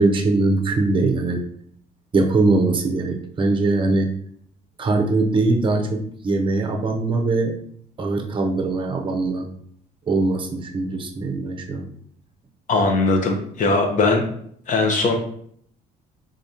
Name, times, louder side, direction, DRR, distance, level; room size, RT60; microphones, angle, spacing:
voice 1, 0.0-1.4 2.1-4.1 4.8-7.6 8.0-9.5 10.1-11.9, right 3 dB, 30° right, 3 dB, 0.7 m, -21 dB
voice 2, 12.7-14.2 14.7-15.2, left 3 dB, 50° left, 3 dB, 0.9 m, -19 dB
3.8 x 3.3 x 2.8 m, 0.65 s
cardioid pair, 110°, 17 cm